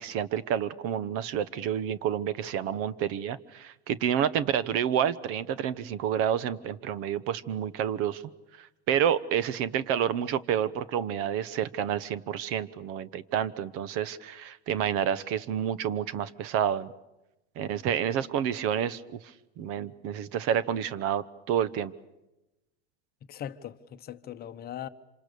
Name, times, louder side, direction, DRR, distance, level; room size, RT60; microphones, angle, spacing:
voice 1, 0.0-8.2 8.6-16.9 17.6-19.0 19.6-21.9, right 9 dB, 50° right, 1.1 m, -29 dB
voice 2, 23.3-24.9, left 10 dB, 30° left, 1.0 m, -39 dB
27.0 x 26.0 x 6.9 m
supercardioid pair, 125°, 31 cm